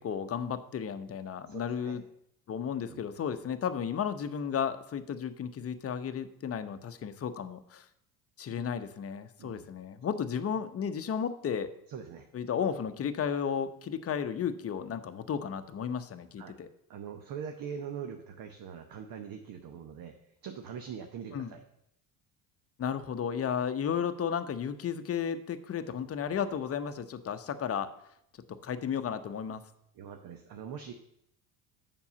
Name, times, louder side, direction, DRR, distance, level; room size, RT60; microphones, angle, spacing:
voice 1, 0.0-2.0 2.5-7.8 8.4-11.7 12.3-16.7 21.3-21.5 22.8-27.9 28.6-29.6, left 7 dB, 30° left, 9 dB, 0.8 m, -33 dB
voice 2, 1.5-2.0 2.9-3.0 9.4-9.7 11.9-12.3 16.4-16.6 16.9-20.1 20.4-21.6 29.9-30.9, right 7 dB, 50° right, 6 dB, 1.0 m, -42 dB
7.0 x 5.4 x 6.9 m, 0.75 s
hypercardioid pair, 70°, 45 cm